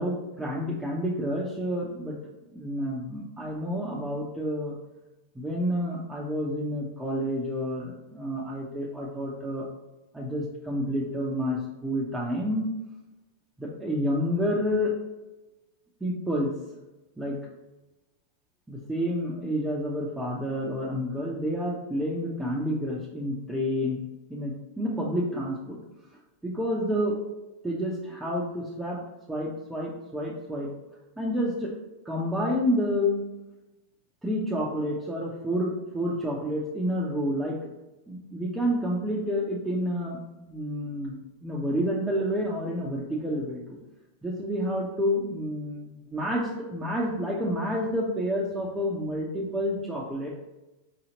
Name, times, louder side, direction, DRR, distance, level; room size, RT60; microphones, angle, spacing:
voice 1, 0.0-2.2 2.5-4.7 5.3-9.7 10.1-12.7 13.6-14.9 16.0-16.5 17.2-17.4 18.7-24.0 24.3-25.8 26.4-27.2 27.6-29.0 29.3-30.7 31.2-31.7 32.0-33.2 34.2-37.6 38.1-43.8 44.2-50.3, equal, 10° right, -5 dB, 0.7 m, -29 dB
4.9 x 2.8 x 2.9 m, 1.0 s
hypercardioid pair, 105°, 0 cm